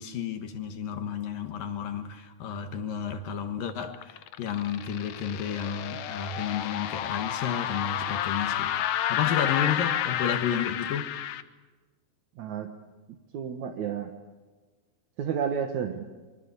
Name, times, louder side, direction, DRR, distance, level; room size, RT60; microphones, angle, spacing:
voice 1, 0.0-8.7 9.1-11.1, left 7 dB, 65° left, 2.9 m, -32 dB
sound 1, 3.7-11.4, left 11 dB, 85° left, 1.6 m, -30 dB
voice 2, 12.4-12.7 13.3-14.1 15.2-16.0, right 7 dB, 60° right, 2.3 m, -31 dB
25.0 x 23.5 x 8.3 m
omnidirectional pair, 4.7 m